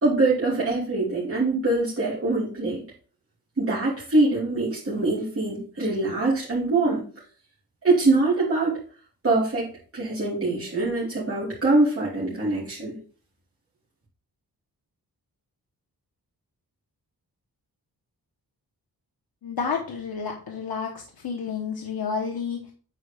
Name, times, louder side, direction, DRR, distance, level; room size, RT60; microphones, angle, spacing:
voice 1, 0.0-2.8 3.6-7.0 7.8-8.8 9.2-13.0, right 2 dB, 35° right, -8 dB, 2.7 m, -23 dB
voice 2, 19.4-22.7, left 5 dB, 75° left, 1 dB, 1.1 m, -30 dB
9.0 x 4.1 x 3.4 m, 0.40 s
wide cardioid pair, 125°, 37 cm